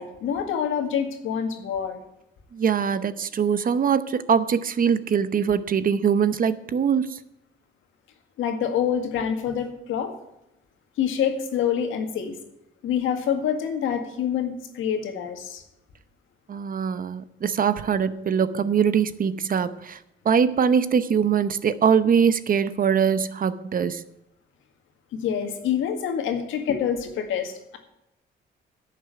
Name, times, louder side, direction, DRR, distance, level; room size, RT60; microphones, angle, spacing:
voice 1, 0.0-2.0 8.4-10.1 11.0-12.4 12.8-15.6 25.1-27.8, left 8 dB, 85° left, 1.9 m, -26 dB
voice 2, 2.5-7.2 16.5-20.0 20.2-24.0, right 7 dB, 45° right, 0.8 m, -22 dB
11.0 x 6.8 x 8.9 m
cardioid pair, 90°, 20 cm